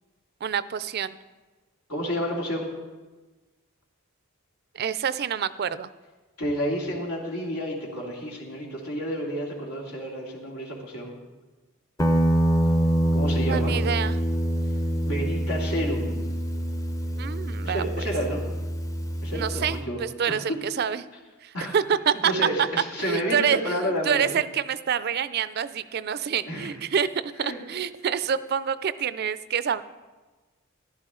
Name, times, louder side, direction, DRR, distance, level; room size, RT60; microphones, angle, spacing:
voice 1, 0.4-1.2 4.7-5.9 13.4-14.2 17.2-17.8 19.3-21.0 21.4-22.3 22.6-22.7 23.0-29.8, right 7 dB, 45° right, 15 dB, 0.4 m, -27 dB
voice 2, 1.9-2.7 6.4-11.1 13.1-13.7 15.0-16.2 17.6-18.4 19.2-20.0 20.3-20.6 21.5-21.7 22.2-24.4 26.4-26.7 27.4-27.6, equal, 90° left, -2 dB, 2.8 m, -30 dB
Guitar, 12.0-19.8, right 1 dB, 15° left, 0.5 m, -25 dB
14.0 x 11.5 x 3.8 m, 1.3 s
head